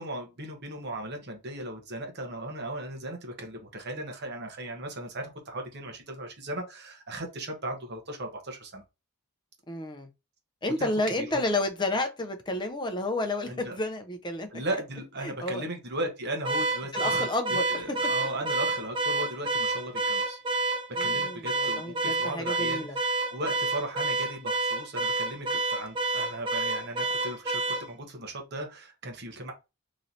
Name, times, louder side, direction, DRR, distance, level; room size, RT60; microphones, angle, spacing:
voice 1, 0.0-8.8 10.8-10.9 11.2-11.4 13.5-13.8 14.5-20.4 21.0-29.5, right 1 dB, 50° right, 1.1 m, -37 dB
voice 2, 9.7-10.1 10.6-14.5 15.2-15.6 16.9-17.8 21.0-23.0, left 2 dB, 20° left, 0.6 m, -31 dB
Car / Alarm, 16.4-27.9, right 3 dB, 25° right, 0.7 m, -29 dB
3.1 x 2.8 x 3.8 m
head